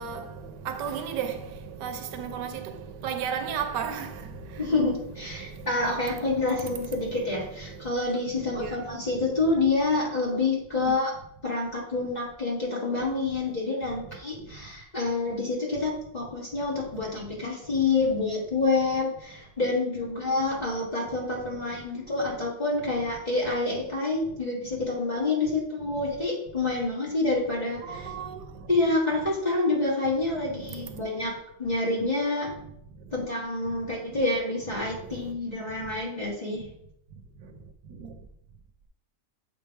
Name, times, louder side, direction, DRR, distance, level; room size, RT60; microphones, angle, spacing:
voice 1, 0.0-4.7 5.2-7.9 8.3-9.2 10.8-11.0 13.9-14.6 16.9-17.5 21.7-22.4 24.3-24.4 25.9-26.0 27.8-28.7 30.3-31.0 32.6-33.2 34.1-34.2 34.9-35.3 35.7-35.9 36.5-36.7 37.1-38.3, right 7 dB, 90° right, 1.3 m, -37 dB
voice 2, 4.6-11.1 11.4-28.1 28.7-32.5 33.1-36.7, left 3 dB, 25° left, 1.7 m, -27 dB
7.2 x 3.3 x 4.4 m
omnidirectional pair, 1.8 m